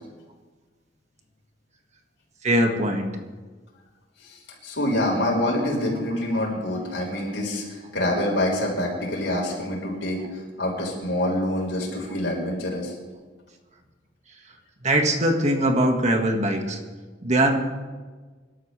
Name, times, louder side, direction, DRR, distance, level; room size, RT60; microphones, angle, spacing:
voice 1, 2.4-3.2 14.8-16.8 17.2-17.6, right 1 dB, 40° right, 3 dB, 1.8 m, -21 dB
voice 2, 4.6-12.9, left 1 dB, 80° left, -2 dB, 5.0 m, -26 dB
26.5 x 12.5 x 3.4 m, 1.4 s
head